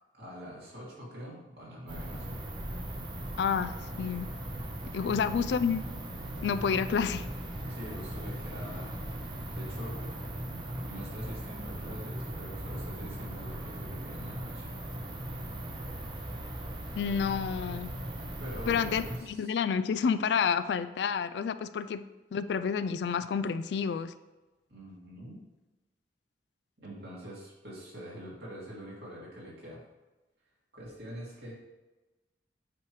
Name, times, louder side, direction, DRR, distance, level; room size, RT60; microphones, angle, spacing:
voice 1, 0.1-2.4 5.1-5.2 7.7-10.1 10.9-14.7 18.4-19.5 24.7-25.4 26.8-29.8 30.7-31.5, equal, 65° right, -5 dB, 2.4 m, -44 dB
sound 1, 1.9-19.2, right 1 dB, 25° right, 0.8 m, -39 dB
voice 2, 3.4-4.3 4.9-5.8 6.4-7.3 17.0-17.9 18.7-22.0 22.3-24.1, left 6 dB, 70° left, 13 dB, 0.3 m, -29 dB
8.4 x 3.1 x 4.8 m, 1.1 s
head